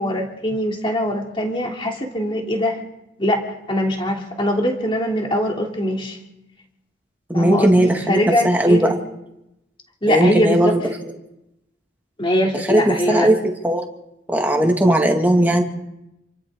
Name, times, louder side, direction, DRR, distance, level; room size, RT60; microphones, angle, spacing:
voice 1, 0.0-2.8 3.2-6.2 7.3-8.9 10.0-10.9 12.2-13.3 14.9-15.0, equal, 25° left, 1 dB, 2.9 m, -22 dB
voice 2, 7.3-8.2 8.4-8.9 10.1-10.8 12.7-13.4 13.6-13.9 14.3-15.6, right 1 dB, 10° right, 1 dB, 2.1 m, -17 dB
28.0 x 26.0 x 3.8 m, 0.89 s
head